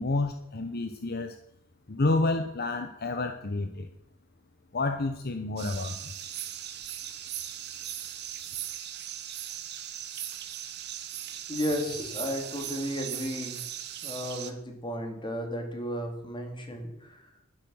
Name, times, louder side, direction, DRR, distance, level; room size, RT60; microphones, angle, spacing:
voice 1, 0.0-1.4 1.9-3.9 4.7-6.1, left 2 dB, 50° left, 7 dB, 0.8 m, -29 dB
sound 1, 5.6-14.5, right 11 dB, 55° right, 1.2 m, -38 dB
voice 2, 11.5-13.7 14.0-17.5, equal, 25° left, 4 dB, 2.3 m, -34 dB
11.5 x 10.5 x 6.2 m, 0.79 s
head